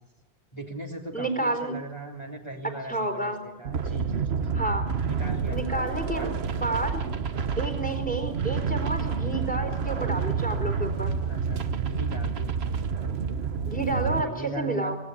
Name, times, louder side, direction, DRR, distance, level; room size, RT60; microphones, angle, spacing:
voice 1, 0.5-4.4 5.1-6.5 11.3-13.1 14.1-15.0, right 1 dB, 25° left, -4 dB, 3.2 m, -39 dB
voice 2, 1.1-1.7 2.9-3.4 4.5-4.9 5.5-6.3 6.6-7.0 7.6-11.1 13.7-15.0, right 2 dB, 5° left, 6 dB, 4.1 m, -30 dB
sound 1, 3.6-14.2, right 6 dB, 65° right, 1.3 m, -29 dB
26.0 x 19.0 x 8.6 m, 1.1 s
omnidirectional pair, 1.1 m